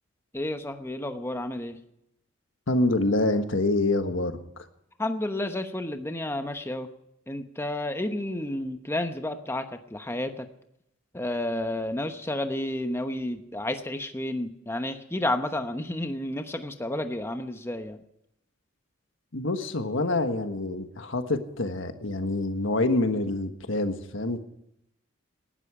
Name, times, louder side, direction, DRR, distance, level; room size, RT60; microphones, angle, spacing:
voice 1, 0.3-1.8 5.0-6.9 7.3-10.5 11.1-18.0, left 1 dB, 10° left, 7 dB, 1.0 m, -31 dB
voice 2, 2.7-4.4 19.3-24.4, left 2 dB, 75° left, 8 dB, 1.4 m, -26 dB
19.0 x 12.5 x 4.9 m, 0.80 s
head